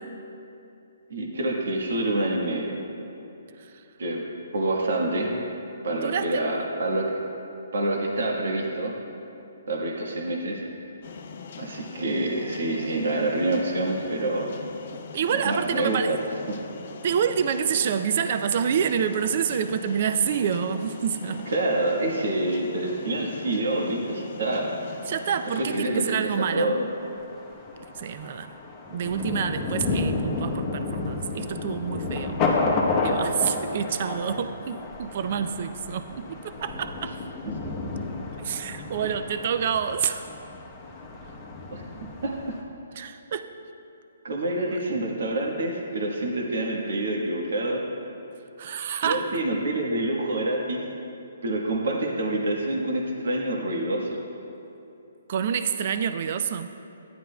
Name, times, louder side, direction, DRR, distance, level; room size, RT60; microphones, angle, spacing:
voice 1, 1.1-2.8 4.0-4.2 4.5-5.4 5.8-7.2 7.7-8.9 9.7-10.6 11.6-14.6 15.3-16.2 16.5-16.6 21.5-24.8 25.6-26.9 39.0-39.1 41.7-41.8 42.2-42.4 44.2-47.8 49.0-50.8 51.4-54.2, right 1 dB, 70° right, -1 dB, 1.3 m, -27 dB
voice 2, 6.0-6.6 15.1-16.2 17.0-21.5 25.1-26.7 28.0-28.5 28.9-32.4 33.0-37.2 38.4-40.2 43.0-43.5 44.7-44.8 48.6-49.3 55.3-56.7, right 7 dB, 45° right, 10 dB, 0.4 m, -27 dB
sound 1, 11.0-25.9, left 6 dB, 55° left, 0.6 m, -42 dB
Thunder, 26.4-42.6, left 3 dB, 20° left, 0.9 m, -31 dB
13.5 x 10.0 x 2.3 m, 2.8 s
hypercardioid pair, 160°, 0 cm